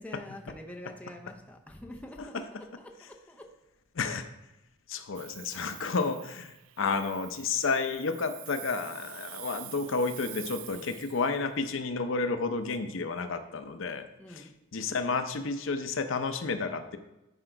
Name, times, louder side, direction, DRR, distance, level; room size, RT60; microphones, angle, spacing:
voice 1, 0.0-3.6 10.7-11.0 14.2-14.6, left 1 dB, 5° left, 2 dB, 0.7 m, -46 dB
voice 2, 3.9-4.3 4.9-14.5 14.7-17.0, left 4 dB, 65° left, 8 dB, 0.6 m, -31 dB
Hiss, 5.1-11.4, right 15 dB, 85° right, 0.4 m, -47 dB
10.0 x 4.9 x 4.5 m, 0.98 s
head